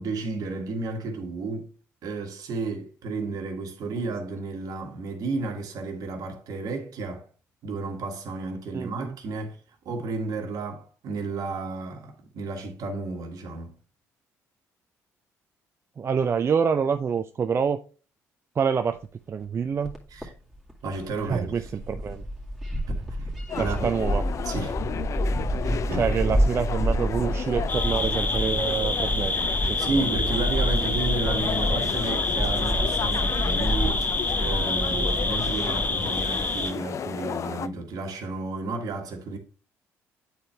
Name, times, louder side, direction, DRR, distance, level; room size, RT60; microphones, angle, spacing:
voice 1, 0.0-1.7 2.0-7.3 7.6-9.6 9.8-13.7 20.1-20.3 20.8-21.5 22.7-23.9 24.4-24.8 25.6-26.3 29.8-39.4, right 3 dB, 65° right, 1.5 m, -32 dB
voice 2, 8.7-9.2 16.0-17.8 18.6-19.0 19.3-19.9 21.2-22.2 23.6-24.2 25.9-29.8 30.1-30.2, right 6 dB, 40° right, 0.4 m, -27 dB
sound 1, 19.0-19.1 19.8-20.0 20.2-20.3 20.5-36.7, equal, 5° right, 2.0 m, -29 dB
sound 2, 23.5-37.7, left 8 dB, 50° left, 0.4 m, -33 dB
sound 3, 27.7-36.7, left 3 dB, 25° left, 0.9 m, -28 dB
8.1 x 4.5 x 3.2 m
supercardioid pair, 60°, 7 cm